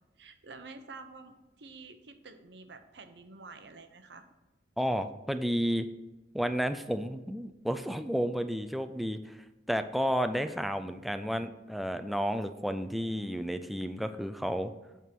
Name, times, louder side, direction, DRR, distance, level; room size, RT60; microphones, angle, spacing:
voice 1, 0.2-4.2, right 3 dB, 70° right, 8 dB, 0.7 m, -49 dB
voice 2, 4.8-5.9 6.3-14.7, equal, ahead, 8 dB, 0.3 m, -32 dB
8.5 x 3.6 x 5.9 m, 1.0 s
head